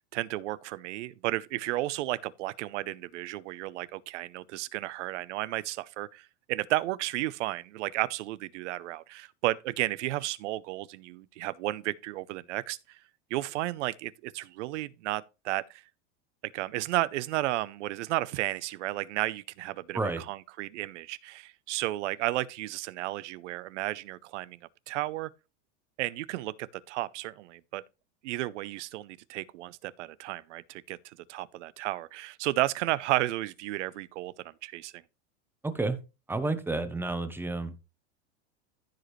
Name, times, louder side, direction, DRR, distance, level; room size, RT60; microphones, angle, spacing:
voice 1, 0.1-13.0 13.3-15.8 16.4-24.6 24.9-25.3 26.0-27.8 28.2-34.3 34.6-35.0, right 17 dB, 85° right, 0.7 m, -33 dB
voice 2, 35.6-36.0 36.3-37.8, right 3 dB, 5° right, 0.9 m, -30 dB
14.5 x 5.1 x 3.1 m
supercardioid pair, 145°, 35 cm